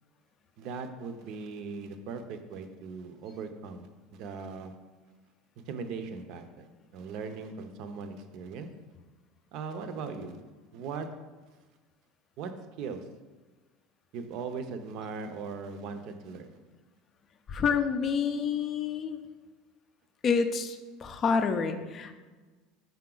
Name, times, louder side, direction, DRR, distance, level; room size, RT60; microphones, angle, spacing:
voice 1, 0.6-4.7 5.6-6.7 6.9-8.7 9.5-10.4 10.7-11.1 12.4-12.5 12.8-13.0 14.1-16.6, right 5 dB, 50° right, 8 dB, 0.6 m, -39 dB
voice 2, 17.5-19.2 20.2-22.1, left 5 dB, 25° left, 8 dB, 0.4 m, -28 dB
5.8 x 5.2 x 3.8 m, 1.3 s
cardioid pair, 160°, 0 cm